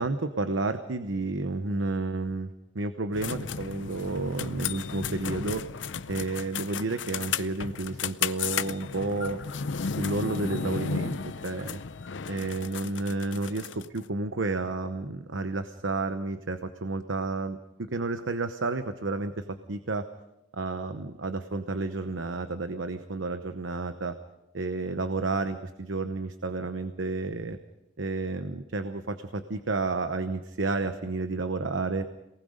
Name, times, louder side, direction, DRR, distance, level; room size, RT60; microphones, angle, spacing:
voice 1, 0.0-2.5 2.7-5.6 6.1-9.4 10.0-11.2 11.4-11.8 12.3-17.6 17.9-20.1 20.5-24.2 24.5-27.6 28.0-32.0, right 3 dB, 85° right, 9 dB, 0.9 m, -31 dB
sound 1, 3.1-14.0, left 6 dB, 75° left, 0.6 m, -34 dB
27.5 x 19.5 x 5.1 m, 0.92 s
head